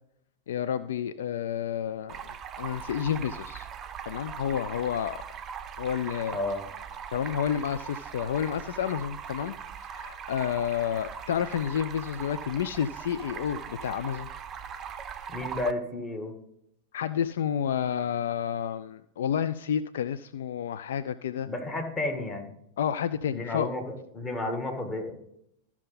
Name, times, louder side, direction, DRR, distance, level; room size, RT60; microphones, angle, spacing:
voice 1, 0.5-3.7 4.1-5.2 5.8-6.4 7.1-9.6 9.9-14.3 16.9-21.5 22.8-23.7, left 9 dB, 60° left, 13 dB, 0.3 m, -30 dB
Stream, 2.1-15.7, right 7 dB, 25° right, 0.6 m, -40 dB
voice 2, 6.3-6.6 15.3-16.3 21.5-22.5 23.3-25.2, left 2 dB, 15° left, 2 dB, 1.9 m, -32 dB
14.0 x 5.8 x 4.0 m, 0.77 s
figure-of-eight pair, 90°, 0 cm